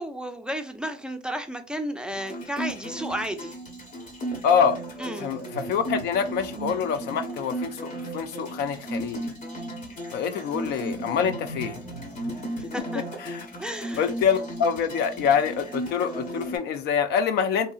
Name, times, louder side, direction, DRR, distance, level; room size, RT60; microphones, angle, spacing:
voice 1, 0.0-3.5 5.0-5.3 12.7-13.0 13.6-14.1, equal, 5° right, 0.3 m, -33 dB
sound 1, 2.1-16.6, right 1 dB, 50° left, 1.0 m, -35 dB
voice 2, 4.4-4.8 5.2-9.3 10.1-11.8 13.2-13.5 14.0-17.7, left 7 dB, 75° left, 0.4 m, -25 dB
2.8 x 2.7 x 2.4 m
cardioid pair, 110°, 17 cm